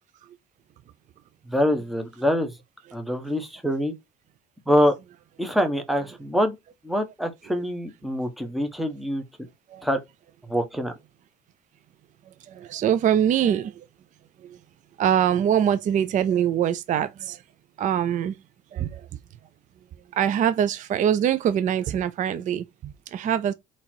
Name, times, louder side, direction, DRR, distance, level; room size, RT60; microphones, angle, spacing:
voice 1, 1.5-2.5 2.9-3.9 4.7-5.0 5.4-6.6 6.8-9.2 9.8-10.0 10.5-10.9, equal, ahead, 1.1 m, -24 dB
voice 2, 12.5-13.7 15.0-17.4 17.8-18.3 18.7-19.0 20.2-23.5, right 9 dB, 50° right, 0.5 m, -23 dB
3.9 x 3.0 x 4.5 m
cardioid pair, 110°, 17 cm